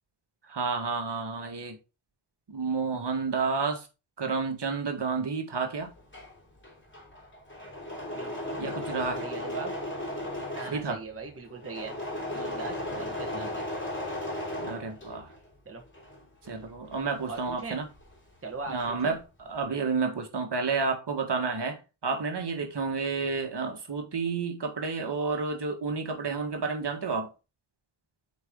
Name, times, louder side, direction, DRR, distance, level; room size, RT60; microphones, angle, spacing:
voice 1, 0.5-1.8 2.5-3.9 4.2-5.9 8.6-9.2 10.7-11.0 13.3-13.5 14.6-15.3 16.5-17.9 18.7-27.3, right 4 dB, 55° right, 1.7 m, -30 dB
Engine / Mechanisms, 5.9-15.5 15.8-18.2 18.4-19.1, left 1 dB, 25° left, 3.0 m, -36 dB
voice 2, 8.1-8.6 9.1-9.7 10.5-11.9 12.3-13.6 15.6-15.8 17.3-17.8 18.4-19.1, right 4 dB, 25° right, 1.2 m, -40 dB
8.1 x 4.4 x 3.7 m
wide cardioid pair, 125°, 49 cm